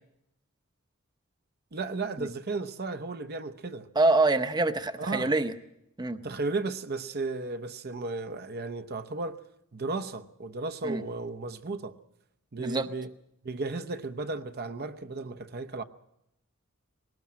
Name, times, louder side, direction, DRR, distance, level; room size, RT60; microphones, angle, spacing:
voice 1, 1.7-3.9 5.0-5.3 6.2-9.4 9.7-11.9 12.5-13.1 13.4-15.8, right 3 dB, 50° right, 0.8 m, -34 dB
voice 2, 3.9-5.5 6.0-6.2 10.8-11.0 12.6-12.9, right 2 dB, 20° right, 0.8 m, -25 dB
20.5 x 18.5 x 7.4 m
head